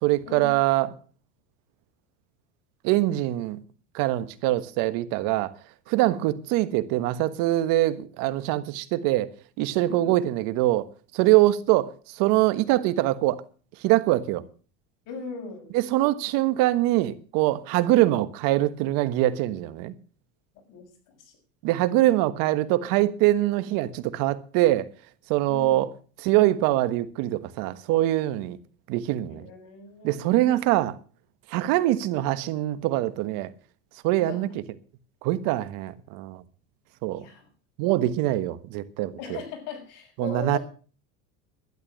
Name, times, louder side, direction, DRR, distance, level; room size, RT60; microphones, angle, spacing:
voice 1, 0.0-0.9 2.8-3.6 3.9-5.5 5.9-9.3 9.6-10.9 11.1-13.4 13.8-14.4 15.7-19.9 21.6-24.9 25.3-25.9 26.2-28.6 28.9-29.5 30.0-30.9 31.5-33.5 34.0-34.5 35.2-36.4 37.0-37.2 37.8-39.4 40.2-40.6, right 16 dB, 65° right, 1.4 m, -23 dB
voice 2, 9.9-10.2 15.1-15.7 20.7-21.4 25.5-25.8 29.3-30.7 34.1-34.5 37.2-37.5 39.2-40.6, left 6 dB, 60° left, 6.4 m, -39 dB
12.5 x 11.0 x 6.4 m
supercardioid pair, 120°, 36 cm